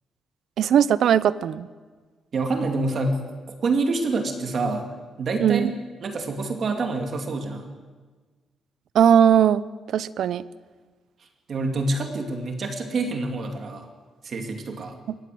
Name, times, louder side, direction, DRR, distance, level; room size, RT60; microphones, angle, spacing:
voice 1, 0.6-1.7 5.4-5.7 8.9-9.6 9.9-10.4, right 9 dB, 65° right, 17 dB, 0.7 m, -18 dB
voice 2, 2.3-3.2 3.5-4.9 5.2-5.7 6.0-7.7 11.5-13.9 14.2-15.0, right 3 dB, 40° right, 4 dB, 2.6 m, -27 dB
22.5 x 19.0 x 7.9 m, 1.4 s
wide cardioid pair, 175°, 0 cm